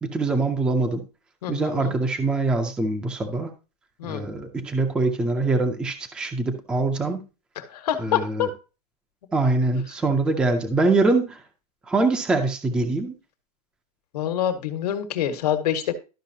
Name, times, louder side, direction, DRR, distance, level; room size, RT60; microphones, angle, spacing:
voice 1, 0.0-1.0 1.5-3.5 4.0-7.2 8.0-8.5 9.3-11.4 11.9-13.1, right 3 dB, 5° right, 7 dB, 0.4 m, -23 dB
voice 2, 1.4-1.9 4.0-4.3 7.6-8.5 14.1-15.9, left 10 dB, 85° left, 8 dB, 1.4 m, -26 dB
12.0 x 5.5 x 2.7 m, 0.32 s
supercardioid pair, 170°, 20 cm